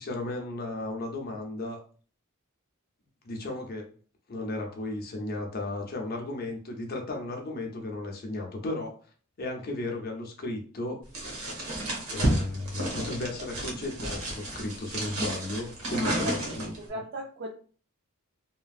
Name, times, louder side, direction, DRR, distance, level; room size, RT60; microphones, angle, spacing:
voice 1, 0.0-1.8 3.2-3.9 4.3-8.9 9.4-11.0 12.1-16.7, left 2 dB, 45° left, 2 dB, 0.6 m, -34 dB
sound 1, 11.1-16.9, right 1 dB, 75° right, 1.0 m, -32 dB
voice 2, 16.0-16.3 16.8-17.5, right 1 dB, 50° right, 0 dB, 0.4 m, -36 dB
2.9 x 2.5 x 2.4 m, 0.41 s
head